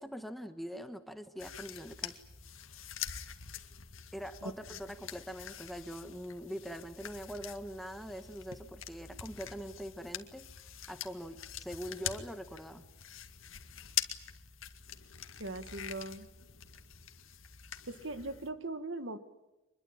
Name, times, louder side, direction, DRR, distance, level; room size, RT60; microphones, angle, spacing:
voice 1, 0.0-2.2 4.1-10.4 10.9-12.9, equal, ahead, 8 dB, 1.3 m, -43 dB
sound 1, 1.4-18.5, left 10 dB, 80° left, 2.0 m, -44 dB
voice 2, 15.4-16.3 17.9-19.2, right 2 dB, 65° right, 10 dB, 1.7 m, -40 dB
25.0 x 21.5 x 8.8 m, 1.0 s
head